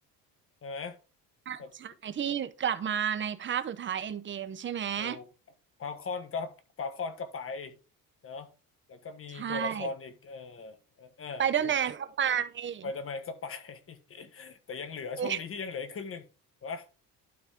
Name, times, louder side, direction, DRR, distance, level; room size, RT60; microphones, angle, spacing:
voice 1, 0.6-1.0 1.6-1.7 5.0-5.3 5.8-7.8 8.2-8.5 8.9-11.7 12.8-16.3 16.6-16.9, left 4 dB, 35° left, 1.4 m, -39 dB
voice 2, 1.5-5.2 9.3-9.9 11.4-12.9 15.2-15.4, right 8 dB, 30° right, 0.8 m, -31 dB
12.0 x 4.2 x 3.6 m
cardioid pair, 110°, 36 cm